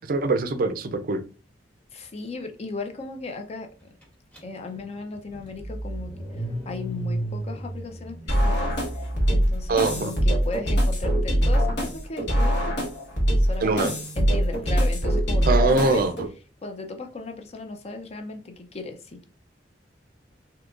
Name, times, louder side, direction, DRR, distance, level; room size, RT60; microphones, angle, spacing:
voice 1, 0.1-1.2 9.7-10.1 13.6-13.9 15.5-16.1, right 3 dB, 50° right, 0.4 m, -22 dB
voice 2, 1.9-3.7 4.4-12.8 13.4-16.1 16.6-19.2, left 3 dB, 35° left, 0.5 m, -36 dB
Car / Engine starting, 4.3-4.4 4.8-10.0, right 1 dB, 5° left, 0.9 m, -34 dB
sound 1, 8.3-16.3, equal, 65° left, 1.2 m, -23 dB
3.7 x 2.8 x 2.4 m
head